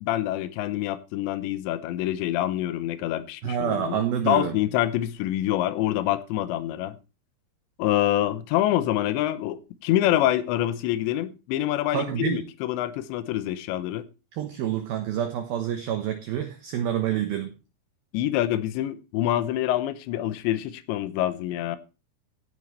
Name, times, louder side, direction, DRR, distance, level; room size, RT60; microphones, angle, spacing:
voice 1, 0.0-7.0 7.8-14.0 18.1-21.8, left 13 dB, 80° left, 2.8 m, -26 dB
voice 2, 3.4-4.6 11.9-12.4 14.3-17.5, right 10 dB, 85° right, 2.1 m, -28 dB
16.0 x 9.3 x 3.2 m
omnidirectional pair, 5.8 m